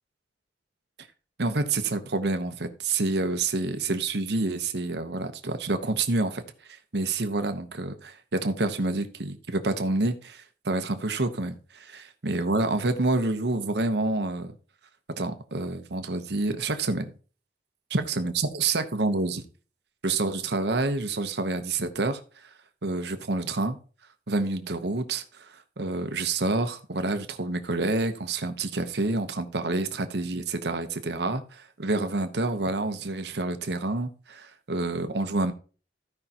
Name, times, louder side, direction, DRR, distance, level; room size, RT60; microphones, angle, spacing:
voice 1, 1.4-6.4 6.7-14.5 15.2-17.1 17.9-19.4 20.0-22.2 22.8-23.8 24.3-35.5, right 2 dB, 70° right, 1.0 m, -28 dB
15.5 x 5.4 x 2.9 m
head